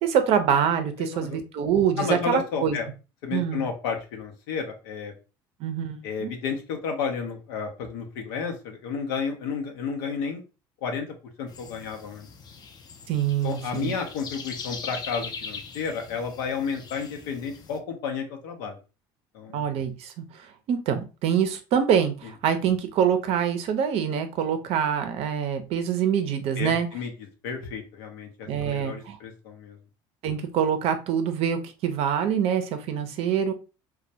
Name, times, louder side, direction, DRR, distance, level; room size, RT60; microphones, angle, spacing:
voice 1, 0.0-2.8 3.3-3.7 5.6-6.3 13.1-13.9 19.5-26.9 28.5-29.2 30.2-33.5, right 8 dB, 60° right, 8 dB, 0.5 m, -25 dB
voice 2, 1.0-1.4 2.0-2.9 3.2-5.1 6.0-10.4 10.8-11.1 11.4-12.3 13.4-18.7 19.3-19.6 26.6-27.1 27.4-29.8, left 6 dB, 85° left, 3 dB, 0.6 m, -32 dB
sound 1, 11.5-17.8, left 5 dB, 35° left, 0.4 m, -41 dB
2.2 x 2.1 x 2.6 m, 0.32 s
supercardioid pair, 85°, 11 cm